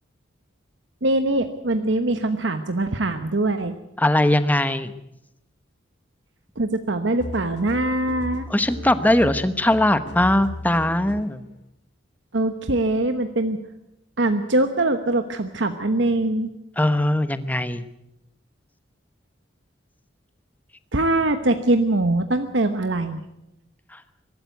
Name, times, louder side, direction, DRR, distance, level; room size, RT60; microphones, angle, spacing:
voice 1, 1.0-3.8 6.6-8.5 12.3-13.6 14.2-16.5 20.9-23.2, right 2 dB, 70° right, 8 dB, 1.1 m, -22 dB
voice 2, 4.0-4.9 8.5-11.4 16.8-17.9 23.9-24.0, left 1 dB, 10° left, 11 dB, 0.9 m, -20 dB
sound 1, 7.2-11.4, left 1 dB, 60° left, 2.1 m, -36 dB
23.0 x 13.0 x 9.4 m, 0.88 s
head